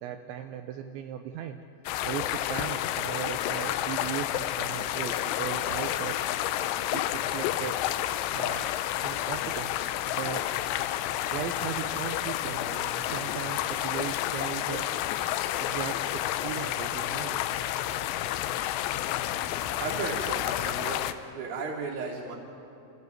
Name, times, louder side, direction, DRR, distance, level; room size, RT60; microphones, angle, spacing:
voice 1, 0.0-1.6 2.0-6.2 6.9-7.8 8.3-8.7 9.0-10.5 11.3-15.0 15.6-17.4, right 10 dB, 80° right, 6 dB, 2.8 m, -37 dB
sound 1, 1.9-21.1, left 13 dB, 85° left, 3.5 m, -30 dB
voice 2, 19.8-21.0 21.3-22.4, right 4 dB, 40° right, -4 dB, 4.7 m, -34 dB
28.5 x 15.0 x 9.3 m, 2.9 s
omnidirectional pair, 5.9 m